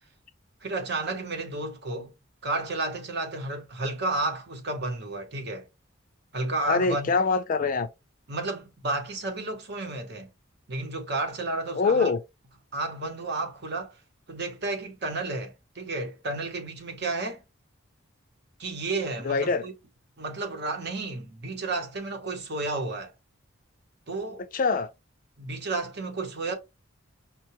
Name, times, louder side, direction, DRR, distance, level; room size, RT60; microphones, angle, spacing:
voice 1, 0.6-2.1 2.4-5.7 6.3-7.1 8.3-10.3 10.7-12.1 12.7-14.0 14.3-17.4 18.6-19.7 20.2-23.1 24.1-24.4 25.4-26.5, right 2 dB, 55° right, 0.9 m, -32 dB
voice 2, 6.7-7.9 11.7-12.2 19.2-19.6 24.5-24.9, left 4 dB, 40° left, 0.4 m, -24 dB
5.6 x 2.2 x 2.9 m
head